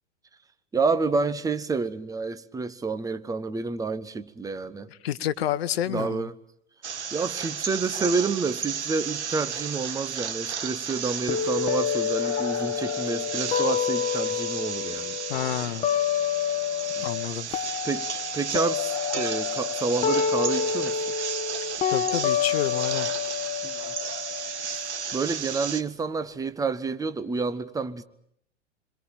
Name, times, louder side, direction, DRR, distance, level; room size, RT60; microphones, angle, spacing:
voice 1, 0.7-4.9 5.9-6.3 7.1-15.2 16.9-17.1 17.5-18.1 18.3-21.0 23.6-23.9 24.7-28.0, right 4 dB, 10° right, 1.2 m, -29 dB
voice 2, 4.9-6.3 15.3-15.9 17.0-17.5 21.9-23.1, left 11 dB, 55° left, 1.2 m, -29 dB
sound 1, 6.8-25.8, right 7 dB, 70° right, 1.6 m, -34 dB
sound 2, 11.3-17.3 17.5-25.3, left 8 dB, 20° left, 1.4 m, -28 dB
sound 3, 12.0-13.8 14.2-14.3 15.4-15.5 16.0-16.1 16.3-16.4 18.7-21.0 23.8-24.7 26.2-26.3, left 2 dB, 85° left, 1.8 m, -41 dB
28.0 x 22.0 x 8.9 m
figure-of-eight pair, 95°, 36 cm